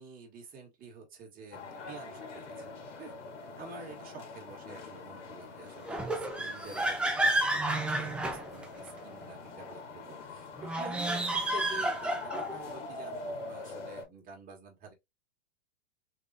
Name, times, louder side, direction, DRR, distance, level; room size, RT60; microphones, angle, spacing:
voice 1, 0.0-3.1 3.6-14.9, right 4 dB, 25° right, 1.9 m, -49 dB
sound 1, 1.5-14.0, left 4 dB, 80° left, 2.1 m, -44 dB
sound 2, 5.9-9.0 10.6-12.6, right 2 dB, 5° right, 0.4 m, -31 dB
4.0 x 3.5 x 2.8 m
hypercardioid pair, 135°, 35 cm